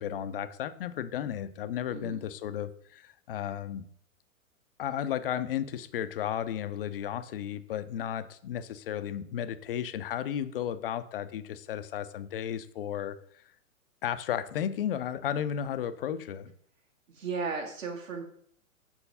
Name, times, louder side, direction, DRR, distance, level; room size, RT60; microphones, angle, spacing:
voice 1, 0.0-3.9 4.8-13.4 14.0-16.5, left 10 dB, 45° left, 13 dB, 0.5 m, -34 dB
voice 2, 1.9-2.2 17.1-18.2, right 4 dB, 65° right, 3 dB, 1.6 m, -35 dB
7.1 x 3.2 x 5.5 m, 0.62 s
figure-of-eight pair, 110°, 42 cm